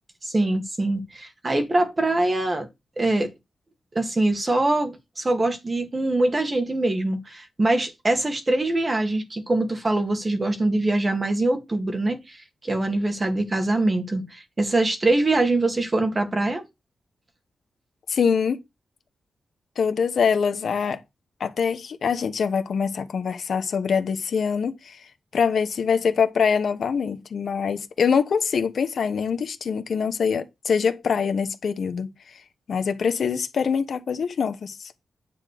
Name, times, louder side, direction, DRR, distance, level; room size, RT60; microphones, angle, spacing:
voice 1, 0.2-2.7 3.0-3.3 3.9-16.6, right 2 dB, 20° right, 1.9 m, -23 dB
voice 2, 18.1-18.6 19.8-21.0 21.4-25.0 25.3-32.1 32.7-34.9, left 6 dB, 60° left, 1.2 m, -24 dB
9.8 x 3.7 x 6.7 m
wide cardioid pair, 165°, 0 cm